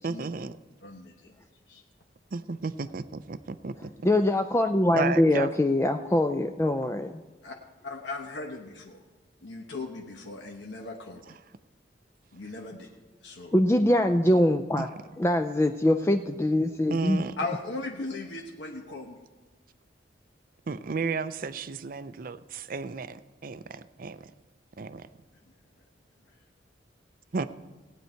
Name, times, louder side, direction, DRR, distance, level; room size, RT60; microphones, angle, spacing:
voice 1, 0.0-0.6 2.3-3.9 4.9-5.5 11.3-11.4 14.8-14.9 16.9-17.4 20.7-24.3 24.8-25.1 27.3-27.5, right 4 dB, 50° right, 13 dB, 0.5 m, -33 dB
voice 2, 0.8-1.3 1.7-1.8 7.4-7.6 7.8-9.0 9.4-11.4 12.3-12.9 13.2-13.5 17.4-19.2, left 3 dB, 85° left, 0 dB, 1.1 m, -38 dB
voice 3, 4.0-7.2 13.5-14.9 15.2-17.2, left 1 dB, 15° left, 6 dB, 0.4 m, -23 dB
17.5 x 9.2 x 4.5 m, 1.3 s
head